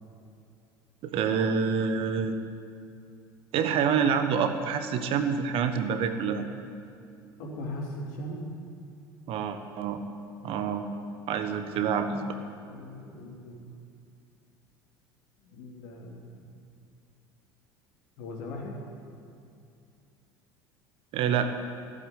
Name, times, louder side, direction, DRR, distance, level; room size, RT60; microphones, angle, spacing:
voice 1, 1.0-2.4 3.5-6.5 9.3-10.0 10.4-10.8 11.3-12.3 21.1-21.5, right 6 dB, 50° right, 8 dB, 1.3 m, -27 dB
voice 2, 7.4-8.6 12.7-13.7 15.4-16.5 18.2-18.8, left 1 dB, 65° left, -1 dB, 3.2 m, -39 dB
15.0 x 7.8 x 9.9 m, 2.5 s
figure-of-eight pair, 70°, 12 cm